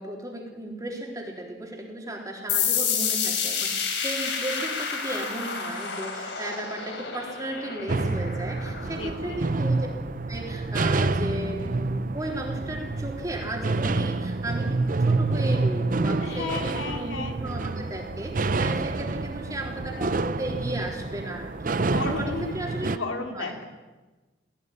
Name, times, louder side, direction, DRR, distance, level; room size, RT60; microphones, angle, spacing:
voice 1, 0.0-9.9 10.3-21.8 22.1-23.0 23.4-23.6, right 1 dB, 20° right, 0 dB, 3.6 m, -35 dB
sound 1, 2.5-9.9, left 6 dB, 65° left, 3.6 m, -30 dB
sound 2, 7.9-23.0, right 3 dB, 45° right, 0.6 m, -28 dB
voice 2, 9.0-9.4 16.2-17.4 21.8-22.5 22.9-23.6, left 3 dB, 90° left, 3 dB, 3.1 m, -33 dB
17.5 x 15.5 x 10.0 m, 1.2 s
head